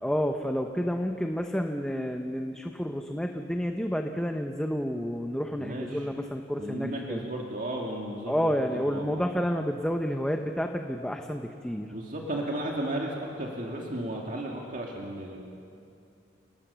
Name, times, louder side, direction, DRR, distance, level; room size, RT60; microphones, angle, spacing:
voice 1, 0.0-7.2 8.3-11.9, equal, 5° left, 4 dB, 0.9 m, -30 dB
voice 2, 5.6-6.1 6.6-9.2 11.9-15.4, right 1 dB, 45° right, -1 dB, 2.4 m, -34 dB
29.5 x 18.5 x 7.0 m, 2.6 s
head